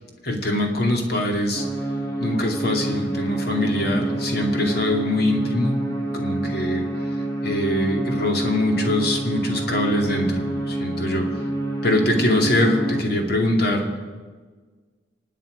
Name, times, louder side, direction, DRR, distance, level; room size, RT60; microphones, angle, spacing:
voice 1, 0.2-1.6 2.2-5.7 6.1-6.8 7.4-11.2 11.8-13.8, left 1 dB, 60° left, 2 dB, 2.6 m, -23 dB
sound 1, 1.5-13.0, right 1 dB, 20° left, 1.9 m, -27 dB
25.0 x 9.1 x 5.2 m, 1.4 s
head